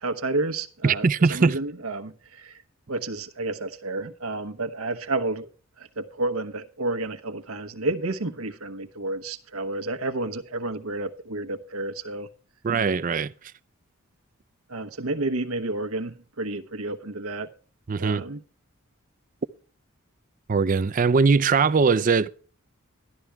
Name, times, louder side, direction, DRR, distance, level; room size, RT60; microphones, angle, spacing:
voice 1, 0.0-2.6 2.9-5.5 5.8-12.3 14.7-17.5 18.0-18.4, right 2 dB, 85° right, 1.1 m, -30 dB
voice 2, 0.8-1.6 12.6-13.3 17.9-18.3 20.5-22.3, right 4 dB, 40° right, 0.4 m, -21 dB
12.5 x 11.5 x 3.4 m
head